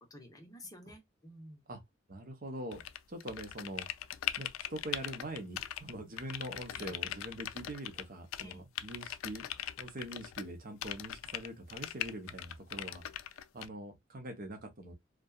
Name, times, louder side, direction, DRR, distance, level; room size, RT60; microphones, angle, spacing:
voice 1, 0.1-1.6 6.7-7.0 8.4-8.6, equal, 20° left, 0.7 m, -51 dB
voice 2, 2.1-2.8 3.1-3.9 4.4-9.5 9.8-13.0 13.5-14.9, right 1 dB, 45° right, 0.7 m, -43 dB
sound 1, 2.7-5.9 6.2-8.0 8.3-10.5 10.8-13.7, left 11 dB, 85° left, 0.3 m, -40 dB
2.7 x 2.2 x 2.2 m
head